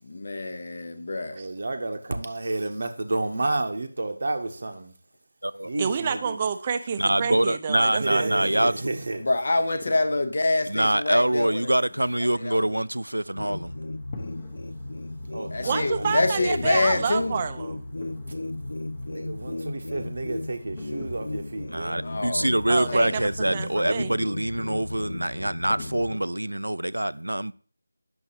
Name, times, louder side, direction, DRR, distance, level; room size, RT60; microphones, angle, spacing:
voice 1, 0.1-1.4 9.2-11.7 12.3-12.6 15.5-17.4 22.0-22.5 22.8-23.2, left 2 dB, 50° left, 0.9 m, -26 dB
voice 2, 1.3-4.9 5.6-6.3 7.9-9.2 15.3-16.0 16.3-16.5 19.1-22.0, right 2 dB, 55° right, 0.8 m, -31 dB
voice 3, 5.8-8.3 15.6-17.9 22.7-24.2, right 6 dB, 25° right, 0.5 m, -29 dB
voice 4, 7.0-8.9 10.7-13.7 21.7-27.5, right 1 dB, 90° right, 0.4 m, -25 dB
sound 1, 8.9-26.3, left 3 dB, 25° left, 0.9 m, -48 dB
sound 2, 13.3-26.2, left 2 dB, 70° left, 0.5 m, -35 dB
8.8 x 6.2 x 2.9 m
figure-of-eight pair, 165°, 0 cm